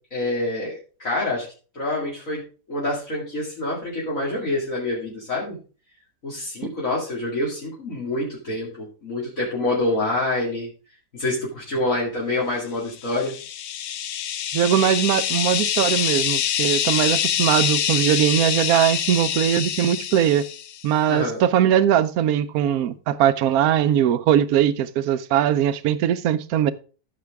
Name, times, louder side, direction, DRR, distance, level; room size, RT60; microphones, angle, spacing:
voice 1, 0.1-1.5 1.7-2.4 2.7-5.6 6.2-10.7 11.1-13.3 21.1-21.4, left 2 dB, 50° left, 2.6 m, -26 dB
sound 1, 13.0-20.8, left 10 dB, 80° left, 0.6 m, -25 dB
voice 2, 14.5-20.5 20.8-26.7, right 10 dB, 65° right, 1.0 m, -20 dB
14.0 x 6.7 x 3.5 m
omnidirectional pair, 1.8 m